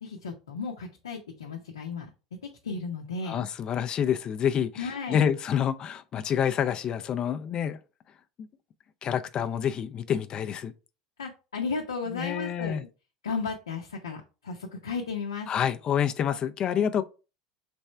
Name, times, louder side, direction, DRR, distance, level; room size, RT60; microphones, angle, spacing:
voice 1, 0.0-2.1 2.4-3.5 4.8-5.3 11.2-12.9 13.2-15.5, left 4 dB, 85° left, 0.7 m, -34 dB
voice 2, 3.3-7.8 8.4-8.5 9.0-10.7 12.1-12.8 15.5-17.0, left 8 dB, 40° left, 0.5 m, -28 dB
3.4 x 3.2 x 4.4 m
hypercardioid pair, 85°, 2 cm